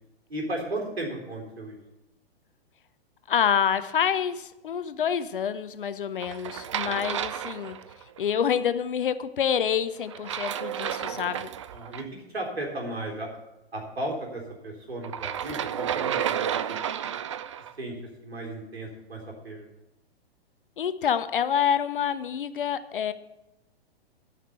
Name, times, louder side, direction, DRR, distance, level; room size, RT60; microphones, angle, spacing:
voice 1, 0.3-1.8 11.7-13.3 13.7-16.8 17.8-17.9 18.2-19.7, right 1 dB, 75° right, 0 dB, 3.8 m, -35 dB
voice 2, 3.3-7.8 8.2-11.5 20.8-23.1, left 8 dB, 55° left, 12 dB, 0.8 m, -27 dB
sound 1, 6.2-8.2 10.1-12.0 15.0-17.7, right 9 dB, 30° right, 0.4 m, -31 dB
12.5 x 5.9 x 8.1 m, 0.95 s
figure-of-eight pair, 115°, 31 cm